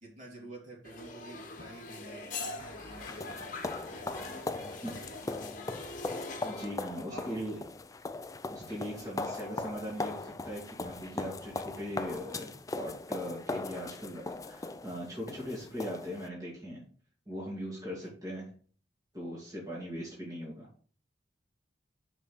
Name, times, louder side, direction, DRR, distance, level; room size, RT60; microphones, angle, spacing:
voice 1, 0.0-6.1 7.0-7.4 9.0-9.4 18.0-18.1, right 1 dB, 40° right, -3 dB, 3.3 m, -50 dB
sound 1, 0.8-6.7, left 3 dB, 45° left, 1.2 m, -43 dB
sound 2, 2.6-16.3, left 2 dB, 20° left, 0.4 m, -39 dB
voice 2, 6.4-7.6 8.5-16.8 17.3-18.5 19.1-20.7, equal, 20° right, -6 dB, 2.7 m, -40 dB
5.8 x 5.5 x 6.4 m, 0.44 s
head